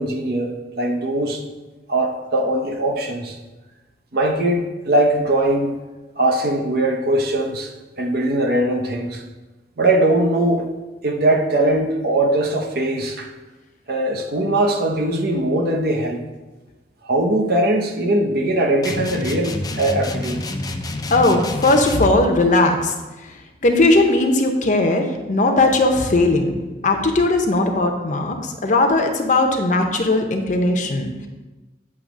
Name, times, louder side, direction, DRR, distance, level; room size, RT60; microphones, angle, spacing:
voice 1, 0.0-1.4 1.9-3.4 4.1-5.7 6.2-7.7 8.0-9.2 9.8-10.6 11.0-13.3 13.9-16.2 17.1-20.4, right 1 dB, 60° right, 3 dB, 0.8 m, -20 dB
sound 1, 18.8-22.2, left 2 dB, 20° left, 0.4 m, -28 dB
voice 2, 21.1-22.9 23.6-31.1, left 2 dB, 45° left, 4 dB, 0.8 m, -18 dB
8.6 x 3.0 x 6.1 m, 1.2 s
head